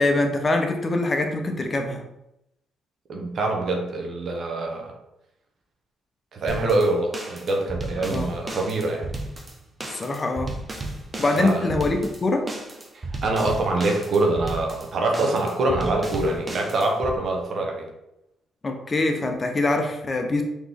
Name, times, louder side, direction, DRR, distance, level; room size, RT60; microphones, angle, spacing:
voice 1, 0.0-2.1 8.1-8.3 9.9-10.5 11.2-12.4 18.6-20.4, left 2 dB, 35° left, 4 dB, 0.7 m, -23 dB
voice 2, 3.1-4.9 6.3-9.1 11.2-11.7 12.9-17.9, right 2 dB, 55° right, 1 dB, 0.8 m, -25 dB
sound 1, 6.5-17.2, right 2 dB, 25° right, 0.7 m, -34 dB
4.0 x 3.0 x 3.4 m, 0.86 s
cardioid pair, 90°, 0 cm